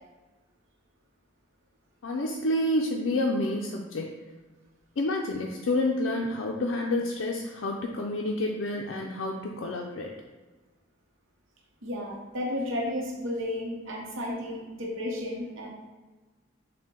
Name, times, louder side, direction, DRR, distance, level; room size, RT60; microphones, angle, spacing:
voice 1, 2.0-4.1 5.0-10.1, left 1 dB, 70° left, 0 dB, 0.4 m, -29 dB
voice 2, 11.8-15.7, left 1 dB, 80° right, -2 dB, 0.8 m, -33 dB
6.5 x 2.2 x 3.7 m, 1.3 s
head